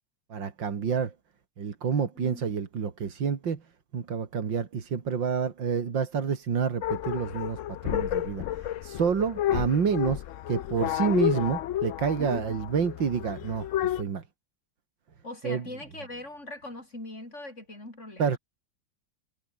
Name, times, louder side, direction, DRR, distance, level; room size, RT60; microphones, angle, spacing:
voice 1, 0.3-1.1 1.6-3.6 3.9-14.2 15.4-15.6 18.2-18.4, right 6 dB, 85° right, 2.9 m, -28 dB
voice 2, 2.2-2.5 12.2-12.6 15.2-18.3, left 2 dB, 40° left, 7.5 m, -41 dB
sound 1, 6.8-14.0, left 12 dB, 70° left, 0.7 m, -31 dB
omnidirectional pair, 2.0 m